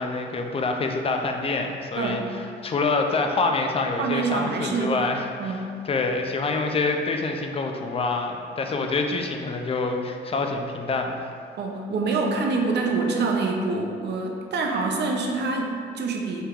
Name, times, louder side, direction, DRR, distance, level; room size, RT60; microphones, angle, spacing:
voice 1, 0.0-11.3, left 3 dB, 30° left, 4 dB, 0.4 m, -26 dB
voice 2, 2.0-2.3 4.0-5.0 5.4-5.7 11.6-16.5, right 3 dB, 60° right, 1 dB, 0.6 m, -26 dB
4.4 x 3.3 x 2.4 m, 2.3 s
cardioid pair, 90°, 20 cm